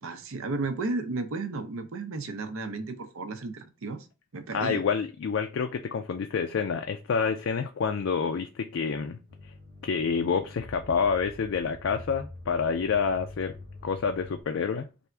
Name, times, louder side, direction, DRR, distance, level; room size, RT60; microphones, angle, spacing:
voice 1, 0.0-4.1 4.3-4.8, right 3 dB, 70° right, 0.6 m, -33 dB
voice 2, 4.5-9.5 9.8-13.5 13.8-14.9, left 5 dB, 60° left, 0.3 m, -28 dB
sound 1, 9.3-14.4, left 2 dB, 40° right, 0.9 m, -45 dB
3.4 x 2.5 x 4.4 m
head